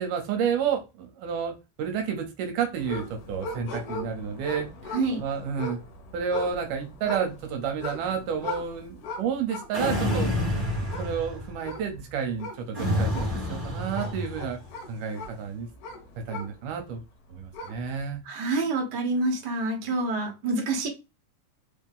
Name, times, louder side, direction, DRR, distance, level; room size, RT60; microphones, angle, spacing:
voice 1, 0.0-4.7 5.2-5.8 6.1-10.3 10.8-14.6 14.9-15.7 16.2-17.0 17.3-18.2, right 7 dB, 75° right, 2.3 m, -30 dB
sound 1, 2.8-16.9 17.3-18.0, left 2 dB, 75° left, 2.3 m, -40 dB
voice 2, 4.9-5.2 18.2-20.9, right 2 dB, 50° right, 1.4 m, -27 dB
sound 2, 9.7-11.6 12.7-14.6, left 1 dB, 25° right, 1.0 m, -28 dB
5.2 x 2.8 x 3.7 m
omnidirectional pair, 3.8 m